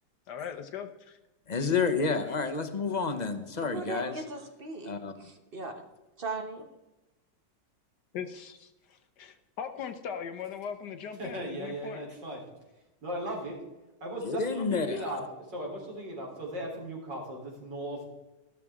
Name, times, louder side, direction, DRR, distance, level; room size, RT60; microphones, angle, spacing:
voice 1, 0.3-1.2 8.1-12.0, left 7 dB, 70° left, 8 dB, 1.4 m, -40 dB
voice 2, 1.5-4.2 4.8-5.1 14.2-15.0, left 4 dB, 30° left, 8 dB, 0.8 m, -29 dB
voice 3, 3.6-4.9 5.2-5.7 6.2-6.6, right 3 dB, 35° right, 5 dB, 1.3 m, -38 dB
voice 4, 11.2-12.4 13.0-13.6 14.0-15.2 15.5-18.0, right 1 dB, 80° right, -2 dB, 4.5 m, -37 dB
13.5 x 12.5 x 3.7 m, 1.0 s
omnidirectional pair, 1.9 m